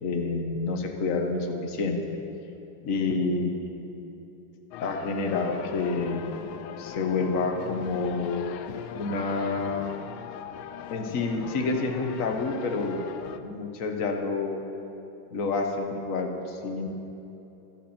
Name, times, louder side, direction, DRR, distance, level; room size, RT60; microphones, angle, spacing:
voice 1, 0.0-2.2 2.8-4.0 4.8-6.3 6.8-8.6 8.9-10.0 10.9-13.0 13.4-14.6 15.3-16.9, left 3 dB, 45° left, 3 dB, 1.4 m, -28 dB
sound 1, 4.7-13.4, left 9 dB, 90° left, 1.5 m, -40 dB
24.0 x 8.7 x 4.4 m, 3.0 s
omnidirectional pair, 2.3 m